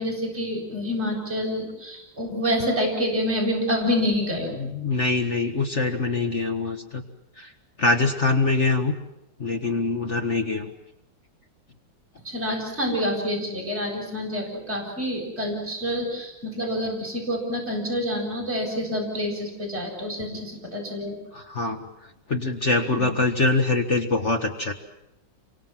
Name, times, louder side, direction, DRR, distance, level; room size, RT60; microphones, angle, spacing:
voice 1, 0.0-4.5 12.2-21.2 23.0-23.1, equal, 35° right, -1 dB, 8.4 m, -27 dB
voice 2, 4.5-7.0 7.4-7.5 7.8-8.9 9.4-10.7 20.3-20.4 21.3-21.8 22.3-24.7, left 3 dB, 40° left, 5 dB, 1.9 m, -24 dB
29.0 x 24.5 x 7.5 m, 0.85 s
omnidirectional pair, 2.0 m